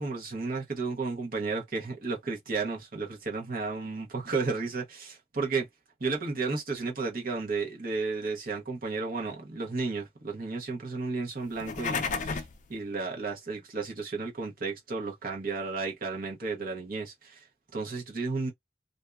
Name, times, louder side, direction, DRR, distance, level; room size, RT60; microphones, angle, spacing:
voice 1, 0.0-5.7 6.0-17.5 17.7-18.5, right 4 dB, 50° right, 0.9 m, -33 dB
sound 1, 11.5-12.6, left 4 dB, 40° left, 0.4 m, -32 dB
2.6 x 2.2 x 2.3 m
head